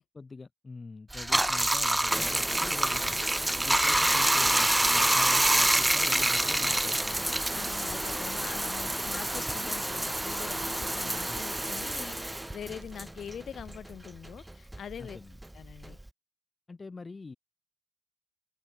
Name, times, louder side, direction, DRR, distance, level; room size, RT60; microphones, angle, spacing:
voice 1, 0.1-3.2 3.6-7.3 11.3-11.4 15.0-15.4 16.7-17.4, left 3 dB, 25° left, 0.7 m, -44 dB
Bathtub (filling or washing), 1.1-13.9 14.2-16.1, right 1 dB, 10° right, 0.5 m, -27 dB
voice 2, 7.5-15.2 15.5-16.0, left 8 dB, 55° left, 1.3 m, -43 dB
Fire, 13.7-14.1, right 13 dB, 80° right, 4.9 m, -58 dB
cardioid pair, 90°, 0 cm